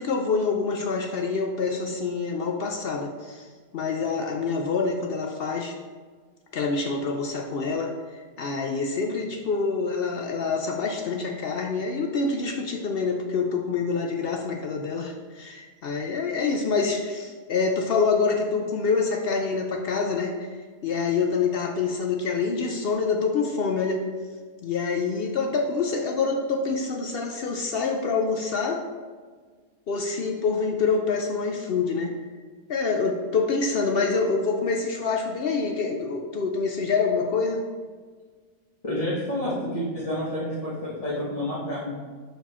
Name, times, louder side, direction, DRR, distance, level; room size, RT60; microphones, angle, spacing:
voice 1, 0.0-3.5 3.7-5.7 6.5-20.5 20.8-24.0 24.6-28.8 29.9-32.1 32.7-37.6, left 4 dB, 75° left, 2 dB, 0.5 m, -26 dB
voice 2, 38.8-41.9, left 1 dB, 25° left, -9 dB, 1.3 m, -29 dB
5.6 x 4.8 x 4.2 m, 1.5 s
omnidirectional pair, 1.6 m